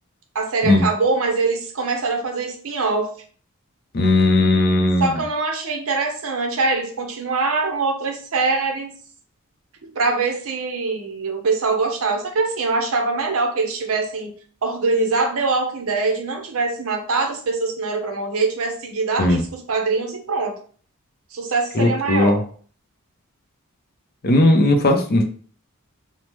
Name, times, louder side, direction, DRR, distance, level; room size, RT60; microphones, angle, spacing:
voice 1, 0.3-3.1 5.0-8.9 9.8-14.3 14.6-20.5 21.3-22.5, right 3 dB, 75° right, 3 dB, 0.7 m, -23 dB
voice 2, 3.9-5.0 19.2-19.4 21.7-22.4 24.2-25.2, left 2 dB, 45° left, 4 dB, 0.5 m, -17 dB
3.1 x 2.1 x 3.0 m, 0.43 s
head